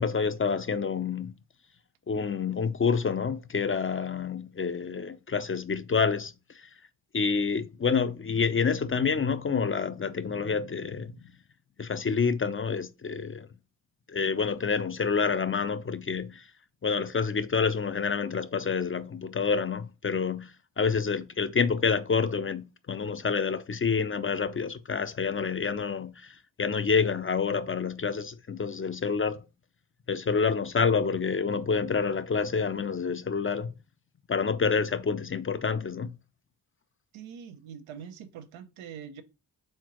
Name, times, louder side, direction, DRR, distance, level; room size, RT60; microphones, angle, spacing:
voice 1, 0.0-1.3 2.1-6.3 6.6-6.7 7.1-11.1 11.8-13.5 14.1-16.4 16.8-29.4 30.1-33.7 34.3-36.1, left 5 dB, 30° left, 0.5 m, -28 dB
voice 2, 37.1-39.2, right 8 dB, 85° right, 0.7 m, -43 dB
4.4 x 3.6 x 3.0 m
supercardioid pair, 40°, 46 cm